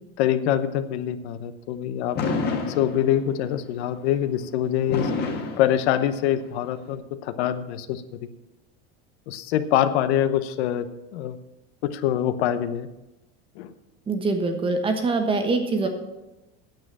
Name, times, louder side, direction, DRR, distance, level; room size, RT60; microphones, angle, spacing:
voice 1, 0.2-2.2 2.8-5.1 5.6-8.0 9.3-10.9 11.1-11.4 11.8-12.9 13.6-13.7, left 11 dB, 80° left, 11 dB, 0.9 m, -24 dB
Fireworks, 2.2-3.5 4.9-6.5, left 4 dB, 30° left, 1.5 m, -28 dB
voice 2, 14.1-15.9, right 3 dB, 15° right, 6 dB, 1.2 m, -24 dB
9.2 x 7.5 x 7.5 m, 0.98 s
cardioid pair, 165°, 32 cm